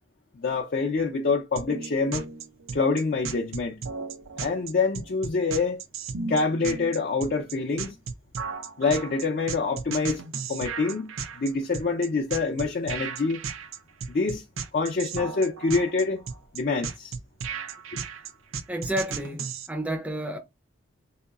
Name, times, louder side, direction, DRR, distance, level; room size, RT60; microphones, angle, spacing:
voice 1, 0.4-2.3 2.7-3.8 4.4-5.8 6.3-8.0 8.8-10.2 10.5-13.4 14.1-14.4 14.7-16.2 16.5-17.1, left 4 dB, 45° left, 0.5 m, -26 dB
sound 1, 1.6-19.7, right 5 dB, 90° right, 0.5 m, -35 dB
voice 2, 18.7-20.4, right 1 dB, 5° right, 0.5 m, -30 dB
3.8 x 2.7 x 2.3 m
head